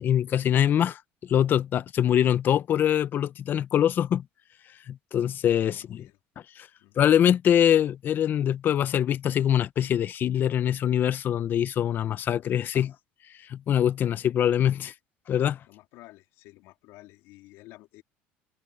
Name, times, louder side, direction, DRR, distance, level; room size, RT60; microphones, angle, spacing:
voice 1, 0.0-4.2 4.9-6.1 6.6-6.7 7.0-12.9 13.5-14.9 15.3-15.6, left 10 dB, 45° left, 0.7 m, -24 dB
voice 2, 5.7-6.2 6.8-7.0 15.7-18.0, left 19 dB, 75° left, 3.6 m, -51 dB
cardioid pair, 115°, 5 cm